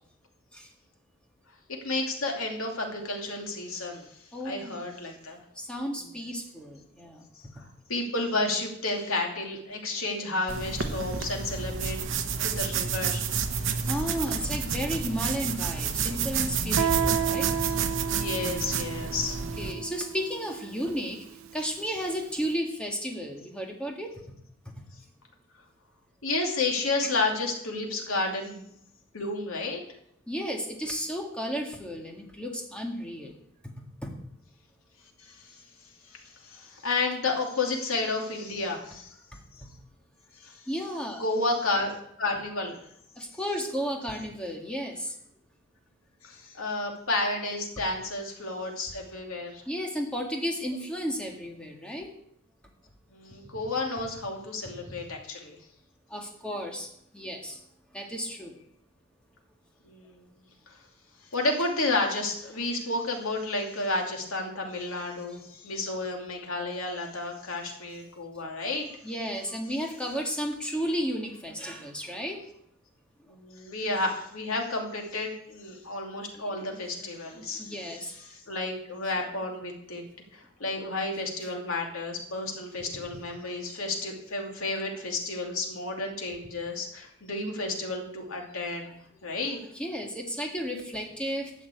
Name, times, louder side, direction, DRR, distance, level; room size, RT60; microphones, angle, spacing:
voice 1, 1.7-4.1 4.4-5.4 7.6-12.0 12.4-13.3 17.6-17.7 18.1-19.4 26.2-28.7 29.1-29.8 35.2-35.6 36.1-39.1 40.4-40.6 41.2-42.8 46.2-49.6 53.1-55.6 59.8-60.3 60.7-60.8 61.3-68.9 73.3-77.7 78.3-80.0 80.3-88.9 89.2-89.6, left 2 dB, 80° left, 1 dB, 2.6 m, -31 dB
voice 2, 4.3-4.8 5.6-7.2 13.8-17.8 18.9-19.0 19.6-21.3 21.5-24.4 24.7-24.8 30.3-33.3 33.6-33.7 34.0-34.2 39.3-39.7 40.7-41.2 43.2-45.2 49.7-52.1 56.1-57.6 57.9-58.6 65.3-65.4 69.0-72.4 76.1-76.2 76.7-77.1 77.4-78.1 82.8-83.0 83.4-83.5 89.7-91.5, equal, 5° left, 1 dB, 1.7 m, -33 dB
sound 1, 10.5-19.7, right 6 dB, 60° right, 1.0 m, -30 dB
Guitar, 16.8-22.2, right 8 dB, 80° right, 0.6 m, -32 dB
12.0 x 6.0 x 8.4 m, 0.72 s
head